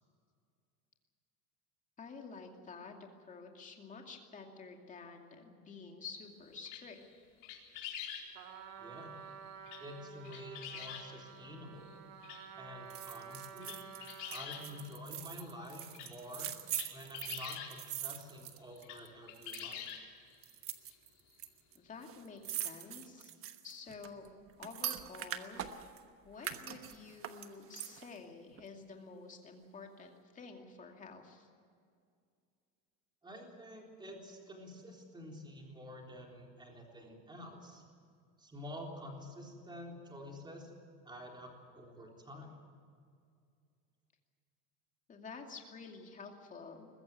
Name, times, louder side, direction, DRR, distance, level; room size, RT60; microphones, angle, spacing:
voice 1, 2.0-7.0 21.7-23.3 23.6-24.3 24.6-25.6 26.2-31.5 45.1-46.9, left 4 dB, 20° left, 3 dB, 2.5 m, -50 dB
sound 1, 6.7-7.1 7.4-8.3 9.7-10.0 10.2-11.1 11.9-12.0 12.2-12.4 13.0-13.1 13.4-15.0 15.4-15.5 15.8-17.7 18.7-19.0 19.3-20.2 20.9-21.0 21.3-21.4 22.7-22.8, left 9 dB, 85° left, 4.2 m, -45 dB
Trumpet, 8.3-15.0, right 6 dB, 65° right, 2.7 m, -51 dB
voice 2, 8.8-9.1 9.8-11.9 12.6-13.8 14.3-16.5 16.9-19.9 33.2-37.8 38.4-40.7 41.1-42.5, left 1 dB, 10° right, 0 dB, 3.7 m, -49 dB
sound 2, 12.9-19.1 19.4-19.9 20.4-21.5 21.7-21.8 22.0-26.0 26.4-28.2 28.6-28.7, right 11 dB, 35° right, 1.2 m, -43 dB
21.5 x 15.0 x 9.6 m, 2.2 s
cardioid pair, 160°, 37 cm